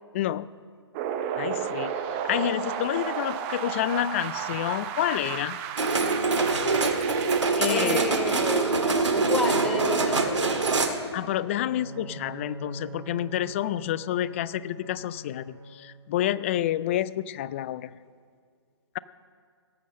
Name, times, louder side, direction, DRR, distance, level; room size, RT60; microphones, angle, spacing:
voice 1, 0.1-0.5 1.4-2.0 2.2-5.6 7.6-8.0 11.1-17.9, left 12 dB, 25° left, 17 dB, 0.3 m, -29 dB
sound 1, 0.9-7.5, right 8 dB, 25° right, 0.8 m, -33 dB
sound 2, 5.8-10.9, right 3 dB, 85° right, 1.9 m, -24 dB
voice 2, 7.7-8.8 9.2-10.6, left 2 dB, 5° left, 0 dB, 1.4 m, -31 dB
Bowed string instrument, 11.3-16.1, right 3 dB, 60° right, 4.0 m, -43 dB
18.5 x 7.7 x 6.3 m, 2.2 s
hypercardioid pair, 145°, 15 cm